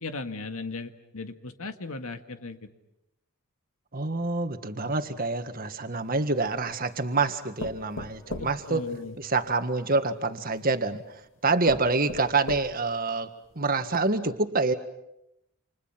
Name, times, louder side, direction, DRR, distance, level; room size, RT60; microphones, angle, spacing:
voice 1, 0.0-2.7 8.4-9.2, left 3 dB, 80° left, 7 dB, 1.8 m, -37 dB
voice 2, 3.9-8.8 9.2-14.7, right 3 dB, 40° right, 8 dB, 1.7 m, -27 dB
sound 1, 5.9-6.8 7.6-9.6 10.5-10.6 11.2-11.3 11.7-13.0 13.5-13.6 13.9-14.0, left 2 dB, 60° left, 2.0 m, -39 dB
30.0 x 27.5 x 5.9 m, 0.83 s
head